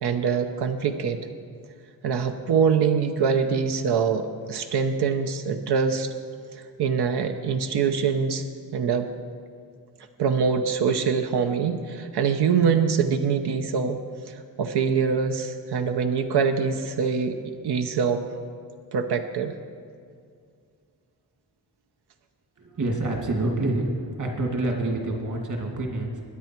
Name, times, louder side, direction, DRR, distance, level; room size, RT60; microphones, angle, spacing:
voice 1, 0.0-1.2 2.0-6.1 6.5-8.4 8.7-9.1 10.2-14.0 14.3-18.2 18.9-19.6, right 6 dB, 85° right, 7 dB, 0.8 m, -24 dB
voice 2, 22.6-26.2, right 2 dB, 50° right, 1 dB, 2.2 m, -27 dB
21.5 x 9.6 x 4.5 m, 2.2 s
wide cardioid pair, 160°, 39 cm